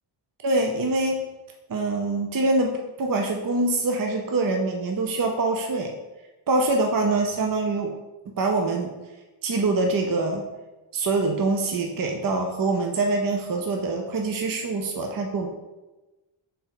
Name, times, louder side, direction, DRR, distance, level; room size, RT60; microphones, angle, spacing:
voice 1, 0.4-1.2 1.7-2.7 3.0-5.9 6.5-7.9 8.4-8.9 9.4-10.4 10.9-15.5, right 2 dB, 45° right, 2 dB, 0.6 m, -24 dB
6.1 x 4.1 x 3.9 m, 1.1 s
wide cardioid pair, 150°, 49 cm